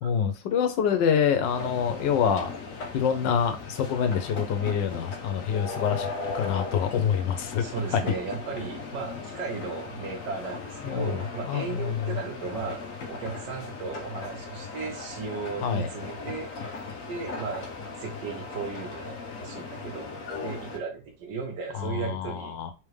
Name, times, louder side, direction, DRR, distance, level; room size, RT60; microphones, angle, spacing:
voice 1, 0.0-2.5 2.9-6.1 6.3-7.6 7.9-8.0 10.8-11.2 11.5-12.2 15.6-15.9 21.7-22.7, left 7 dB, 75° left, 1.4 m, -26 dB
sound 1, 1.4-20.8, left 4 dB, 60° left, 0.9 m, -38 dB
voice 2, 7.6-16.8 17.0-17.7 18.0-20.1 20.4-22.6, right 4 dB, 65° right, 1.5 m, -36 dB
3.7 x 3.5 x 3.2 m
omnidirectional pair, 2.0 m